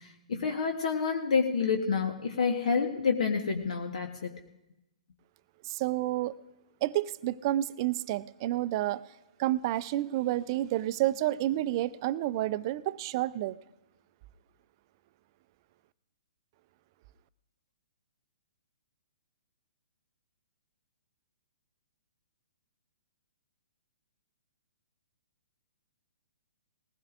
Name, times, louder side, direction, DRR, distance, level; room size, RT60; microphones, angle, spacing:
voice 1, 0.0-4.3, left 5 dB, 70° left, 3 dB, 1.1 m, -28 dB
voice 2, 5.6-6.3 6.8-9.0 9.4-13.6, right 14 dB, 40° right, 16 dB, 0.4 m, -30 dB
20.5 x 15.5 x 2.5 m, 0.95 s
hypercardioid pair, 140°, 4 cm